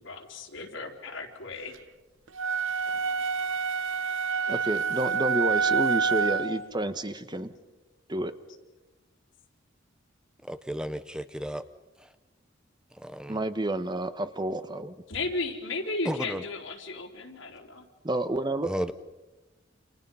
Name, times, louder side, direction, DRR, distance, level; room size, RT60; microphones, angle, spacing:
voice 1, 0.0-1.7 15.1-17.8, left 3 dB, 80° left, 2 dB, 4.0 m, -35 dB
sound 1, 2.4-6.6, right 5 dB, 85° right, 1.1 m, -27 dB
voice 2, 4.5-7.5 8.1-8.3 13.3-14.9 18.0-18.7, right 1 dB, 25° right, 10 dB, 1.2 m, -30 dB
voice 3, 10.5-11.6 13.0-13.4 16.1-16.4 18.6-18.9, equal, 5° right, 11 dB, 0.7 m, -33 dB
29.0 x 28.0 x 5.6 m, 1.1 s
head